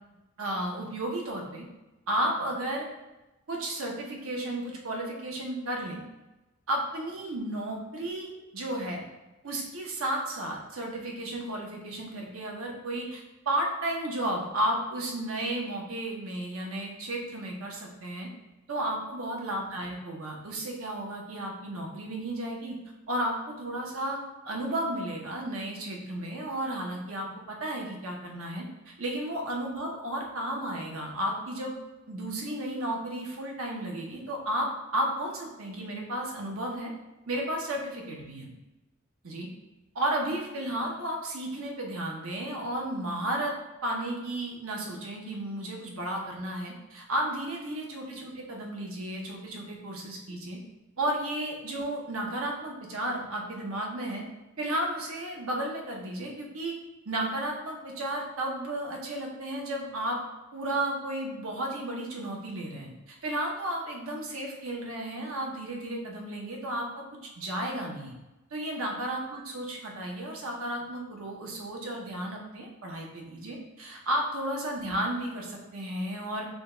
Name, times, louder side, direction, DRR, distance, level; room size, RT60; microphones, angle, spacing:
voice 1, 0.4-1.6 2.1-2.9 3.5-6.0 6.7-9.0 9.4-18.3 18.7-22.8 23.1-24.2 24.4-28.6 29.0-31.7 32.1-36.9 37.3-38.5 39.2-39.5 39.9-43.5 43.8-50.6 51.0-54.2 54.6-56.7 57.1-60.2 60.5-67.0 67.4-68.1 68.5-76.5, right 1 dB, 80° right, 0 dB, 0.9 m, -33 dB
5.0 x 2.3 x 3.8 m, 1.0 s
head